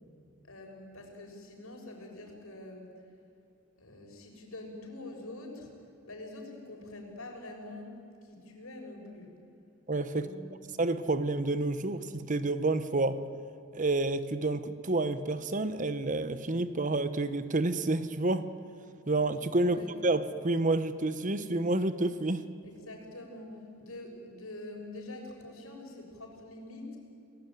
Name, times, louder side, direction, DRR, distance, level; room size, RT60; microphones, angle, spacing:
voice 1, 0.4-2.9 3.8-5.7 6.0-9.3 10.1-10.7 19.6-19.9 22.6-27.0, left 2 dB, 85° left, 1 dB, 6.3 m, -45 dB
voice 2, 9.9-10.3 10.8-13.2 13.7-18.5 19.1-22.5, right 2 dB, 40° right, 12 dB, 1.1 m, -29 dB
29.5 x 19.0 x 9.3 m, 2.6 s
head